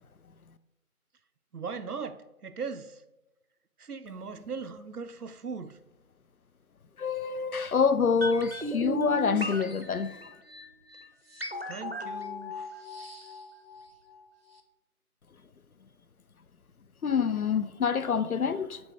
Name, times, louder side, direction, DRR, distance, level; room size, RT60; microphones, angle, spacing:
voice 1, 1.5-3.0 3.8-5.8 11.7-12.7, right 5 dB, 85° right, 0.7 m, -39 dB
voice 2, 7.0-10.2 17.0-18.8, left 6 dB, 70° left, 0.6 m, -26 dB
sound 1, 8.2-14.2 14.5-14.6, right 1 dB, 40° right, 0.6 m, -37 dB
7.8 x 4.1 x 3.5 m
figure-of-eight pair, 165°, 45 cm